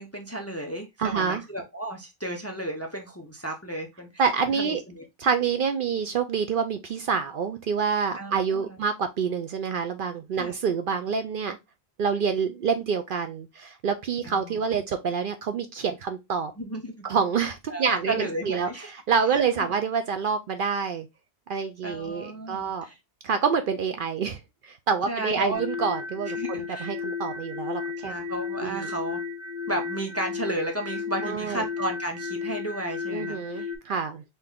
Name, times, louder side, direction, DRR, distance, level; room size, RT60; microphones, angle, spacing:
voice 1, 0.0-4.1 4.6-5.0 8.1-8.8 10.4-10.6 14.2-14.6 16.6-17.1 17.7-18.9 21.8-22.9 25.1-25.6 26.4-27.0 28.0-29.2 29.7-33.7, right 1 dB, 15° left, 0.6 m, -33 dB
voice 2, 1.0-1.4 4.2-4.8 5.2-11.6 12.0-16.5 17.0-21.1 21.5-22.8 23.2-28.1 28.6-28.9 31.2-31.6 33.1-34.2, right 6 dB, 60° right, 0.6 m, -27 dB
sound 1, 25.5-33.8, left 5 dB, 30° right, 1.1 m, -34 dB
3.9 x 2.8 x 3.5 m
omnidirectional pair, 1.1 m